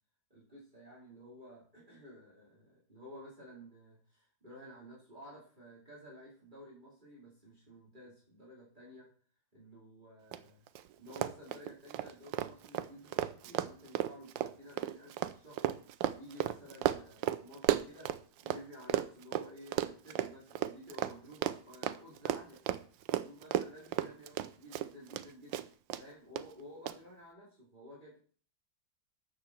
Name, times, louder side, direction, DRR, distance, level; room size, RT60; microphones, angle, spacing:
voice 1, 0.3-9.1 9.5-10.7 11.0-15.6 16.1-18.1 18.4-22.6 23.2-25.7 26.0-28.2, equal, 25° right, -5 dB, 4.4 m, -53 dB
Run, 10.3-10.4 10.7-10.8 11.1-18.6 18.9-25.2 25.5-26.0 26.4-26.5 26.9-27.0, right 12 dB, 90° right, 1.4 m, -34 dB
12.5 x 8.2 x 4.4 m, 0.44 s
omnidirectional pair, 2.0 m